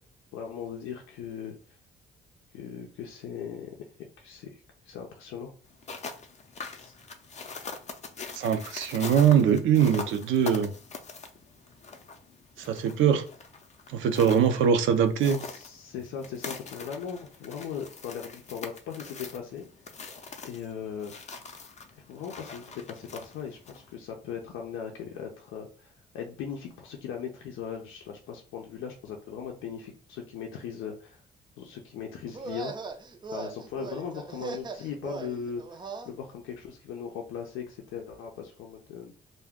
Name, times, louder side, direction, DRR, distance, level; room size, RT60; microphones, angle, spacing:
voice 1, 0.3-1.8 2.5-3.7 4.2-5.5 6.8-6.9 15.3-19.6 20.4-21.1 22.1-31.2 31.6-32.7 33.3-39.1, left 7 dB, 90° left, 1 dB, 0.5 m, -39 dB
sound 1, 5.7-23.9, left 4 dB, 35° left, 0.5 m, -43 dB
voice 2, 8.3-10.7 12.6-13.2 13.9-15.4, right 8 dB, 80° right, 8 dB, 0.5 m, -22 dB
sound 2, 32.3-36.1, right 4 dB, 25° right, 0.4 m, -39 dB
2.3 x 2.1 x 3.5 m, 0.40 s
cardioid pair, 90°, 20 cm